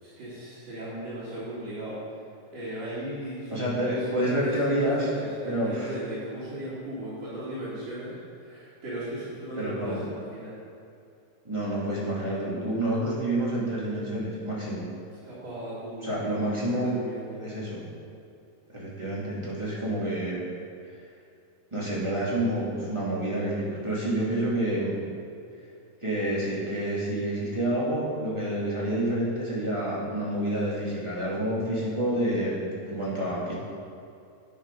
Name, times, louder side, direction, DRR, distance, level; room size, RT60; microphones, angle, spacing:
voice 1, 0.0-2.0 2.5-10.6 15.2-16.3 16.7-17.4, right 1 dB, 55° right, -12 dB, 3.3 m, -37 dB
voice 2, 3.5-5.1 5.4-5.9 9.6-10.0 11.4-14.8 16.0-16.9 17.4-17.8 18.7-20.4 21.7-25.0 26.0-33.5, right 1 dB, 10° right, -7 dB, 1.6 m, -28 dB
9.3 x 7.3 x 5.2 m, 2.5 s
omnidirectional pair, 3.5 m